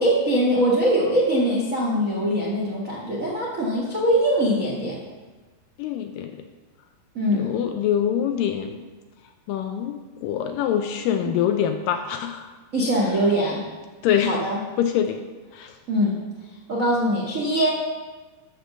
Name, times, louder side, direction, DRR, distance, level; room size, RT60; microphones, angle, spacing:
voice 1, 0.0-5.0 7.1-7.5 11.2-11.3 12.7-13.6 14.2-14.6 15.9-16.2 16.7-17.7, equal, 90° right, -3 dB, 0.7 m, -22 dB
voice 2, 5.8-6.3 7.3-8.8 9.5-12.5 14.0-14.4 14.8-15.2 15.5-15.7, left 9 dB, 80° left, 6 dB, 2.0 m, -24 dB
13.0 x 5.2 x 6.8 m, 1.3 s
omnidirectional pair, 4.4 m